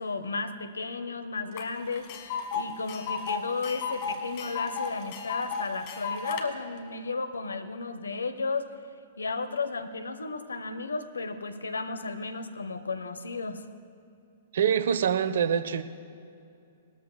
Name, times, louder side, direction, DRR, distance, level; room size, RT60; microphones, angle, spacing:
voice 1, 0.0-2.1 2.5-8.7 9.2-13.6, left 4 dB, 75° left, 10 dB, 0.8 m, -34 dB
Tick, 1.6-1.7 1.9-6.4, left 6 dB, 40° left, 1.3 m, -34 dB
voice 2, 14.5-15.8, right 8 dB, 60° right, 12 dB, 0.6 m, -25 dB
19.5 x 13.5 x 2.3 m, 2.5 s
figure-of-eight pair, 110°, 0 cm